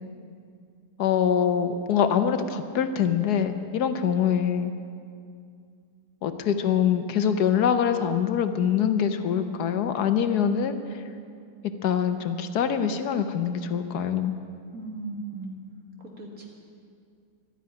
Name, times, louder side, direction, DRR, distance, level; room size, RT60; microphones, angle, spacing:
voice 1, 1.0-4.7 6.2-11.0 11.8-14.3, left 8 dB, 75° left, 9 dB, 1.3 m, -24 dB
voice 2, 14.7-15.6 16.2-16.5, right 3 dB, 60° right, 0 dB, 2.6 m, -36 dB
13.0 x 9.2 x 9.8 m, 2.3 s
omnidirectional pair, 1.8 m